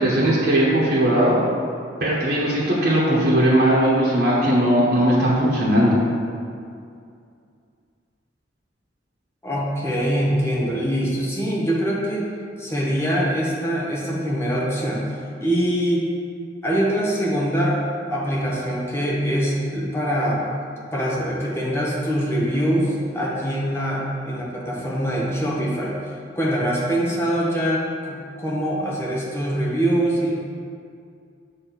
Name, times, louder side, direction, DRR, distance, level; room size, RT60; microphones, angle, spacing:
voice 1, 0.0-1.4 2.0-5.9, right 1 dB, 55° right, -7 dB, 1.2 m, -18 dB
voice 2, 9.4-12.3 12.6-16.0 16.6-17.8 18.1-20.4 20.9-26.0 26.3-30.3, equal, 15° left, -5 dB, 1.1 m, -23 dB
7.6 x 3.1 x 6.0 m, 2.4 s
head